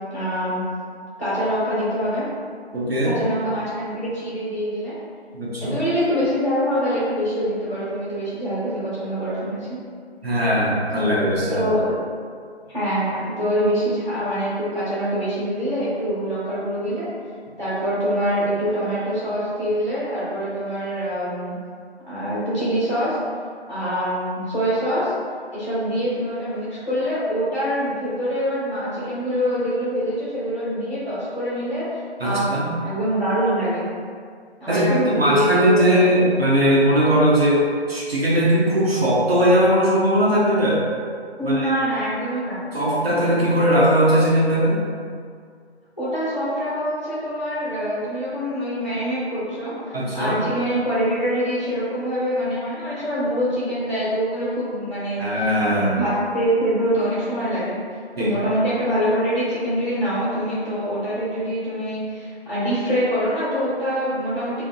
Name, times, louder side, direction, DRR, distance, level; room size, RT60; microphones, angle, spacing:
voice 1, 0.1-0.6 1.2-2.3 3.0-4.9 5.6-9.7 11.5-12.0 12.7-17.1 17.6-21.5 22.1-23.2 23.7-25.1 25.5-31.8 32.2-32.4 32.8-33.9 34.6-36.3 41.4-42.6 46.0-57.8 58.2-64.6, equal, 30° left, -13 dB, 0.8 m, -24 dB
voice 2, 2.7-3.2 5.3-5.8 10.2-11.7 32.2-32.7 34.7-34.8 35.2-40.9 41.4-41.7 42.7-44.8 49.9-50.4 55.2-55.9 58.2-58.4, equal, 65° right, -6 dB, 0.8 m, -19 dB
2.7 x 2.1 x 2.6 m, 2.1 s
figure-of-eight pair, 165°, 33 cm